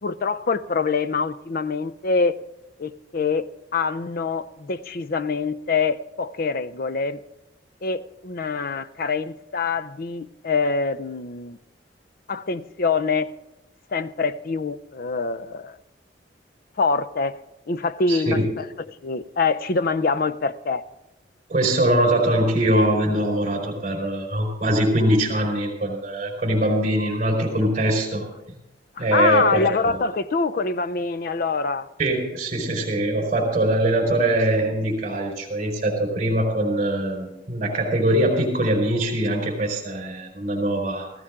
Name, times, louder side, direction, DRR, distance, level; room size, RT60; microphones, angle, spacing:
voice 1, 0.0-2.4 2.8-3.5 3.7-7.2 7.8-11.6 12.3-13.3 13.9-15.8 16.8-17.4 17.7-20.8 29.0-31.9, left 4 dB, 55° left, 0.5 m, -25 dB
voice 2, 18.1-18.5 21.5-28.3 29.0-30.0 32.0-41.1, right 1 dB, 40° right, 4.3 m, -22 dB
15.5 x 15.5 x 3.7 m
head